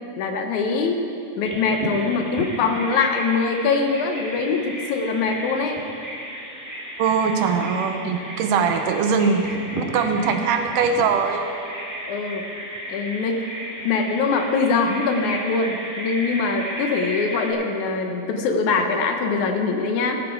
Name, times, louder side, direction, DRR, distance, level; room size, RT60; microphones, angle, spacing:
voice 1, 0.2-1.1 1.4-5.8 12.1-12.5 12.9-13.5 13.8-20.2, left 4 dB, 75° left, 4 dB, 2.2 m, -23 dB
Bird vocalization bird call bird song, 1.4-17.5, equal, 10° right, 1.4 m, -34 dB
voice 2, 7.0-11.5, right 5 dB, 85° right, 5 dB, 2.5 m, -21 dB
15.0 x 11.0 x 4.7 m, 2.6 s
omnidirectional pair, 3.7 m